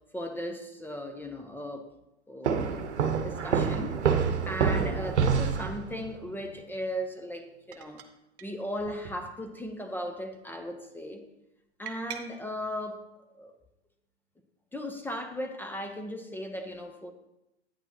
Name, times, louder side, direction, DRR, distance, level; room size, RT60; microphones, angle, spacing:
voice 1, 0.1-1.9 2.3-2.9 3.2-3.9 4.2-8.0 8.4-11.2 11.8-13.0 13.3-13.5 14.7-17.1, equal, 5° left, 5 dB, 0.6 m, -37 dB
sound 1, 2.4-6.1, right 6 dB, 75° right, 0.9 m, -27 dB
sound 2, 6.4-6.6 7.7-8.1 8.4-8.5 8.8-9.7 10.0-10.4 11.9-12.2, right 8 dB, 50° right, 1.0 m, -45 dB
9.4 x 8.9 x 2.9 m, 0.89 s
hypercardioid pair, 100°, 35 cm